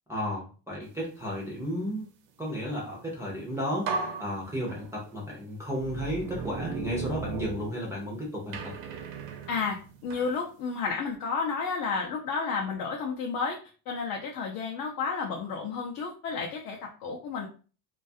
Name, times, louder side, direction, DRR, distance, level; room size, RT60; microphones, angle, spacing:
voice 1, 0.1-2.0 2.4-3.9 4.2-8.7, equal, 5° right, -5 dB, 0.4 m, -33 dB
sound 1, 3.3-3.4 3.8-5.1 5.8-8.1 8.5-10.3, right 4 dB, 80° right, 0.7 m, -36 dB
voice 2, 9.5-13.6 13.9-17.5, left 5 dB, 50° left, 0 dB, 0.5 m, -31 dB
2.3 x 2.3 x 2.5 m, 0.37 s
cardioid pair, 150°, 44 cm